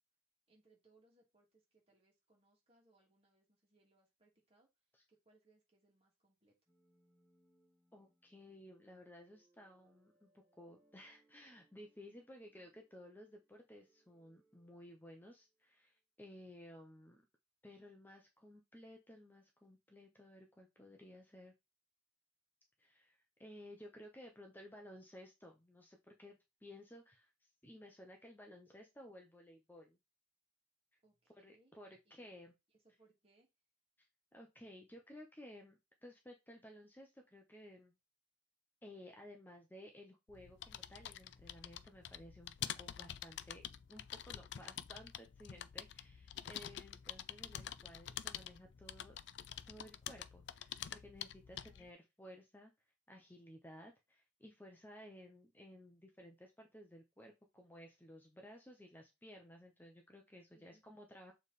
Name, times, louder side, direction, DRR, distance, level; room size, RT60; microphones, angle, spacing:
voice 1, 0.5-4.7 5.1-6.6 31.0-32.3 32.7-33.5 51.5-51.9 60.5-60.8, right 2 dB, 30° right, -1 dB, 2.5 m, -72 dB
sound 1, 6.7-15.6, right 2 dB, 15° right, 2.1 m, -76 dB
voice 2, 7.9-17.2 17.6-21.5 22.8-30.0 31.4-32.5 34.0-38.0 38.8-49.2 49.7-52.7 53.1-61.3, left 1 dB, 10° left, 2 dB, 0.8 m, -56 dB
sound 2, 40.3-51.9, left 10 dB, 65° left, 0.4 m, -47 dB
7.0 x 3.4 x 4.2 m, 0.23 s
head